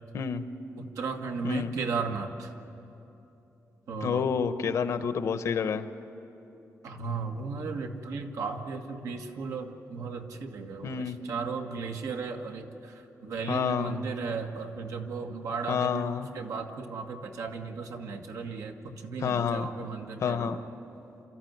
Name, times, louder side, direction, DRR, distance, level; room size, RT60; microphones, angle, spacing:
voice 1, 0.1-0.5 1.4-1.7 4.0-5.9 10.8-11.2 13.5-14.0 15.7-16.3 19.2-19.7 20.2-20.6, left 6 dB, 65° left, 11 dB, 0.9 m, -29 dB
voice 2, 0.8-2.5 3.9-4.3 6.8-16.0 16.3-20.6, right 4 dB, 75° right, 4 dB, 1.7 m, -35 dB
29.0 x 14.0 x 9.4 m, 2.9 s
wide cardioid pair, 180°, 6 cm